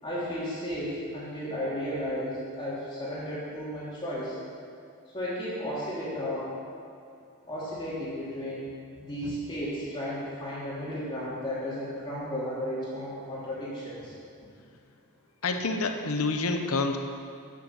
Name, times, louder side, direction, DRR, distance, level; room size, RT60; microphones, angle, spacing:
voice 1, 0.0-4.4 5.1-6.5 7.5-8.7 9.0-14.1, equal, 20° left, -9 dB, 2.8 m, -34 dB
voice 2, 15.4-17.0, left 3 dB, 80° left, 5 dB, 0.9 m, -28 dB
9.4 x 7.8 x 6.5 m, 2.4 s
head